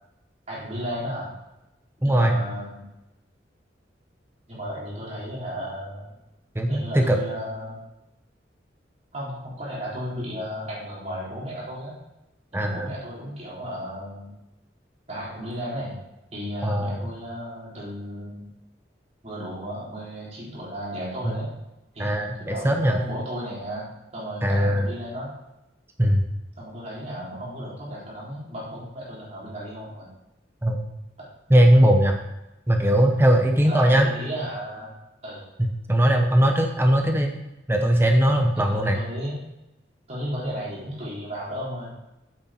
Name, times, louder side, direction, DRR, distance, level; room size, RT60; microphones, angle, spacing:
voice 1, 0.5-1.3 2.0-2.9 4.5-6.1 6.7-7.8 9.1-11.9 12.5-14.4 15.1-16.0 16.3-18.5 19.2-21.5 21.9-25.3 26.6-30.1 31.2-31.3 33.6-34.9 35.2-35.4 38.6-39.4 40.1-42.0, equal, 40° right, -7 dB, 3.8 m, -34 dB
voice 2, 2.0-2.4 6.5-7.2 12.5-12.9 16.6-17.0 21.2-21.4 22.0-23.0 24.4-24.9 26.0-26.2 30.6-30.8 31.5-32.2 32.7-34.1 35.9-37.4 37.7-39.0, equal, 15° right, 3 dB, 0.8 m, -19 dB
8.9 x 7.8 x 4.4 m, 0.96 s
head